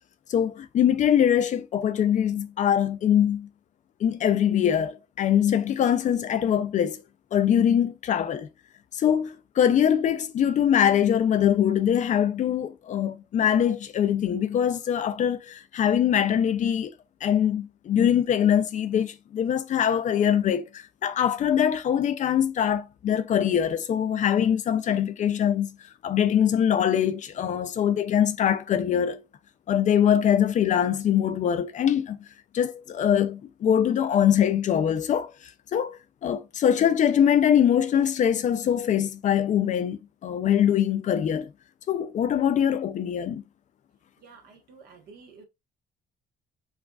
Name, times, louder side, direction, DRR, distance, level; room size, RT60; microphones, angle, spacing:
voice 1, 0.3-3.5 4.0-7.0 7.3-8.5 8.9-16.9 17.2-25.8 26.0-29.2 29.7-32.2 32.5-35.3 35.7-41.5 41.9-43.4, left 9 dB, 45° left, 0.5 m, -23 dB
voice 2, 44.2-45.5, right 5 dB, 70° right, 1.2 m, -50 dB
4.7 x 2.4 x 2.3 m
cardioid pair, 110°, 17 cm